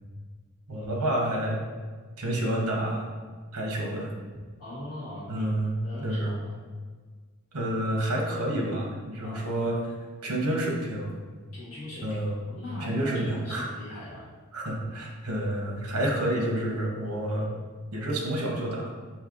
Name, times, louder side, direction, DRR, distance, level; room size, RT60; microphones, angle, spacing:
voice 1, 0.7-1.6 2.2-3.1 3.5-4.1 5.3-6.4 7.5-9.9 10.2-11.1 12.0-12.4 12.8-13.7 14.5-17.5 17.9-18.9, right 1 dB, 75° right, 0 dB, 0.9 m, -29 dB
voice 2, 4.6-5.4 5.8-6.6 9.2-9.6 11.5-12.1 12.5-14.3, left 1 dB, 70° left, -8 dB, 1.5 m, -40 dB
5.4 x 2.7 x 2.5 m, 1.5 s
head